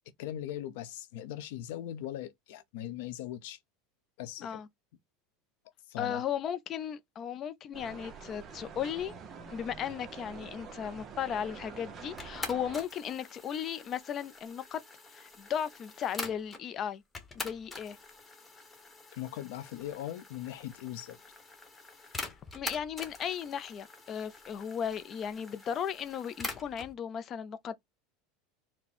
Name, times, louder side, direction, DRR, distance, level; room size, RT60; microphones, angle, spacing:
voice 1, 0.2-3.6 4.2-4.6 5.9-6.2 19.1-21.2, left 12 dB, 75° left, 0.8 m, -40 dB
voice 2, 6.0-9.1 9.5-14.8 15.1-17.0 17.3-18.0 22.5-27.7, left 8 dB, 40° left, 0.6 m, -36 dB
sound 1, 7.7-12.8, right 6 dB, 30° right, 0.9 m, -46 dB
sound 2, 12.2-16.6 17.1-26.9, left 3 dB, 15° left, 1.2 m, -45 dB
4.4 x 2.2 x 4.2 m
supercardioid pair, 115°, 0 cm